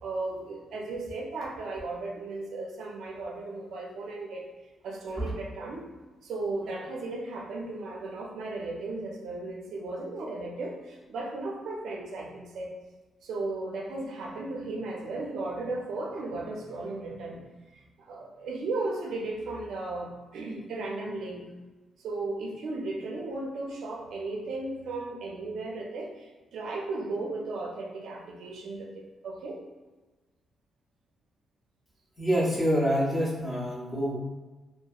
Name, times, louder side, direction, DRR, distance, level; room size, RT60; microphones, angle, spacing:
voice 1, 0.0-4.4 4.8-5.9 6.2-12.7 13.2-17.4 17.7-21.4 22.0-29.6, right 2 dB, 75° right, -1 dB, 0.4 m, -35 dB
voice 2, 32.2-34.2, equal, 15° left, -6 dB, 0.6 m, -26 dB
2.8 x 2.4 x 2.3 m, 1.2 s
wide cardioid pair, 170°, 0 cm